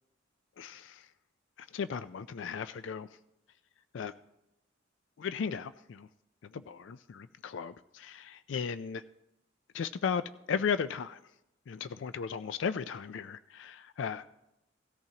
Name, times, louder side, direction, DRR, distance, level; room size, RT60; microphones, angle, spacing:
voice 1, 0.6-1.1 1.7-3.1 3.9-4.1 5.2-6.1 6.5-9.0 9.7-11.2 11.7-14.4, left 6 dB, 70° left, 13 dB, 0.4 m, -36 dB
17.5 x 13.5 x 2.8 m, 0.87 s
head